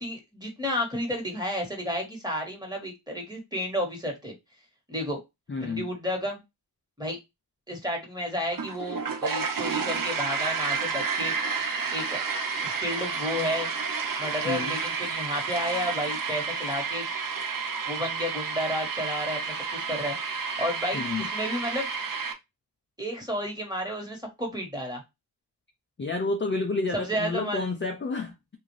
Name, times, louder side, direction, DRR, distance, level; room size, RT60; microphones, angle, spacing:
voice 1, 0.0-4.3 4.9-5.2 5.6-6.4 7.0-7.2 7.7-11.3 11.9-12.2 12.6-13.7 14.2-17.0 17.9-20.1 20.6-21.9 23.0-25.0 26.9-27.7, equal, 10° right, 1.4 m, -31 dB
voice 2, 5.5-5.9 14.4-14.8 20.9-21.3 26.0-28.6, left 3 dB, 30° left, 0.4 m, -30 dB
sound 1, 8.5-22.3, right 5 dB, 55° right, 0.7 m, -30 dB
3.6 x 2.5 x 3.1 m
wide cardioid pair, 90°, 41 cm